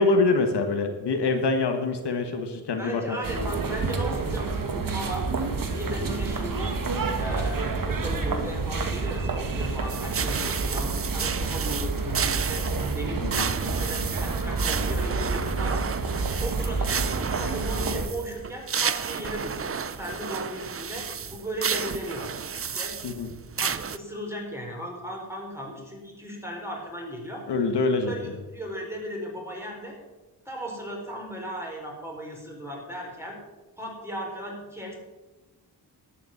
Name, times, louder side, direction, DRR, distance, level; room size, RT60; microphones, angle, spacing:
voice 1, 0.0-3.2 13.2-13.5 23.0-23.3 27.5-28.4, left 3 dB, 75° left, 5 dB, 1.6 m, -25 dB
voice 2, 2.8-5.3 5.7-6.8 7.2-12.7 12.9-15.8 16.4-23.0 23.6-27.4 28.1-30.0 30.4-33.4 33.8-35.0, equal, 5° right, -1 dB, 4.7 m, -36 dB
sound 1, 3.2-18.1, right 4 dB, 50° right, 1.8 m, -29 dB
sound 2, 9.9-24.0, right 7 dB, 35° right, 0.6 m, -32 dB
12.0 x 8.5 x 7.2 m, 1.1 s
cardioid pair, 85°, 41 cm